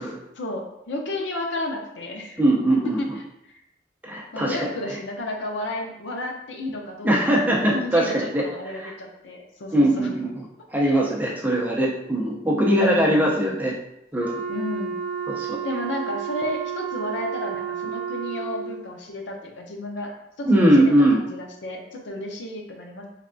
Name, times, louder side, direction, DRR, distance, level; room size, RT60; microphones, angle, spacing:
voice 1, 0.4-2.4 3.0-3.1 4.3-10.1 10.8-11.0 12.6-13.3 14.5-15.0 15.6-20.1 20.4-23.1, left 1 dB, 85° left, 2 dB, 0.6 m, -32 dB
voice 2, 2.4-3.2 4.0-5.0 7.0-8.4 8.8-8.9 9.7-13.7 14.1-14.4 15.3-15.6 20.4-21.2, right 1 dB, 10° right, -3 dB, 0.5 m, -21 dB
Wind instrument woodwind instrument, 14.2-18.8, right 8 dB, 55° left, 1.2 m, -31 dB
3.3 x 3.2 x 2.5 m, 0.83 s
head